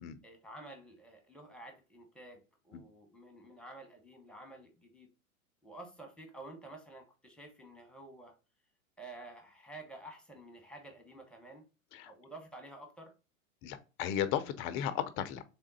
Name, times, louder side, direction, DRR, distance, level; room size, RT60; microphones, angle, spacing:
voice 1, 0.2-5.1 5.6-8.3 9.0-11.6 12.0-13.1, right 2 dB, ahead, 1.1 m, -51 dB
voice 2, 13.6-15.4, left 10 dB, 30° left, 0.5 m, -35 dB
3.7 x 3.4 x 4.0 m
hypercardioid pair, 110°, 42 cm